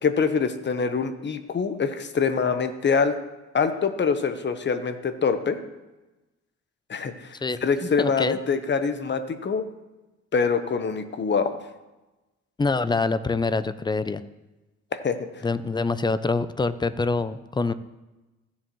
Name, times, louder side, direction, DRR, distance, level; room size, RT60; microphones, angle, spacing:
voice 1, 0.0-3.1 3.5-5.6 6.9-7.3 7.6-9.6 10.3-11.6 14.9-15.2, left 5 dB, 35° left, 9 dB, 1.0 m, -24 dB
voice 2, 7.4-8.4 12.6-14.2 15.4-17.7, left 3 dB, 15° left, 14 dB, 0.4 m, -25 dB
15.5 x 7.2 x 3.1 m, 1.1 s
cardioid pair, 90°, 30 cm